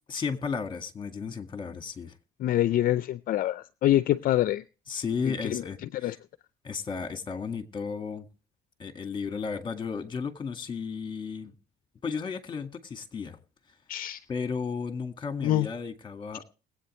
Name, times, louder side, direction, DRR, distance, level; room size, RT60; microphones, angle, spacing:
voice 1, 0.1-2.1 4.9-6.2 6.6-8.3 8.8-11.5 12.0-13.4 14.3-16.4, left 5 dB, 30° left, 1.9 m, -34 dB
voice 2, 2.4-4.6 5.2-5.6 6.0-6.2 13.9-14.2 15.4-15.7, left 13 dB, 55° left, 0.5 m, -25 dB
21.5 x 8.4 x 3.2 m
cardioid pair, 110°, 17 cm